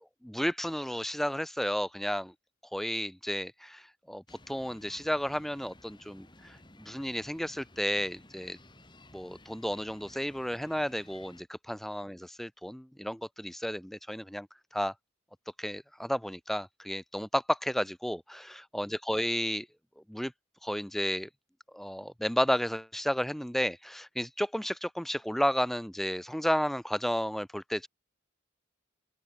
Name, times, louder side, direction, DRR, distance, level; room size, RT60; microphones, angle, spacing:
voice 1, 0.2-2.3 2.7-8.6 9.1-14.5 14.7-14.9 15.6-19.7 20.1-20.3 20.6-21.3 21.7-27.9, equal, ahead, 0.4 m, -32 dB
sound 1, 4.3-11.4, left 1 dB, 20° left, 5.5 m, -56 dB
open air
head